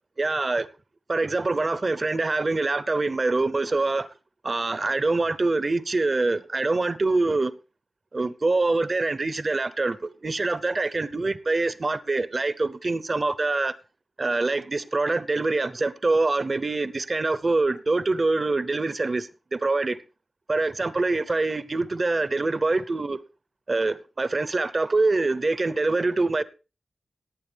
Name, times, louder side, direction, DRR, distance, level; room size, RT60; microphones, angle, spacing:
voice 1, 0.2-0.7 1.1-4.1 4.4-7.5 8.1-13.7 14.2-20.0 20.5-23.2 23.7-26.4, right 3 dB, 40° right, 0.8 m, -25 dB
18.0 x 8.9 x 3.4 m
wide cardioid pair, 80°, 0 cm